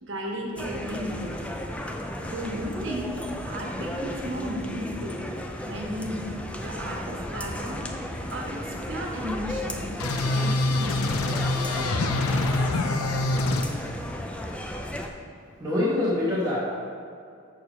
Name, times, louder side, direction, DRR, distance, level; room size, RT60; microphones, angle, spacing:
voice 1, 0.0-1.4 2.2-3.2 3.5-5.2 5.7-7.8 8.3-9.9 10.3-11.7, equal, 60° right, -1 dB, 1.3 m, -34 dB
sound 1, 0.6-15.1, left 1 dB, 5° left, 0.4 m, -34 dB
sound 2, 10.0-13.6, left 2 dB, 90° left, 0.7 m, -25 dB
voice 2, 15.6-16.6, left 2 dB, 15° right, -9 dB, 1.2 m, -24 dB
6.9 x 6.6 x 5.0 m, 2.3 s
head